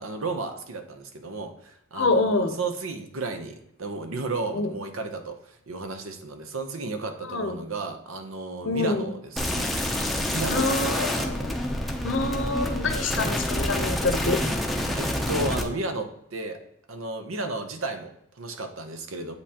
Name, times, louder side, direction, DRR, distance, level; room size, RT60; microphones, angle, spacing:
voice 1, 0.0-9.7 10.3-11.3 12.5-12.8 15.0-16.6 16.9-19.3, right 3 dB, 85° right, 7 dB, 0.8 m, -33 dB
voice 2, 1.9-2.6 4.5-4.7 7.3-7.5 8.6-9.1 10.5-11.5 12.0-14.4, left 3 dB, 65° left, 7 dB, 0.7 m, -26 dB
sound 1, 9.4-15.6, left 1 dB, ahead, 0.5 m, -27 dB
8.0 x 5.3 x 2.9 m, 0.74 s
head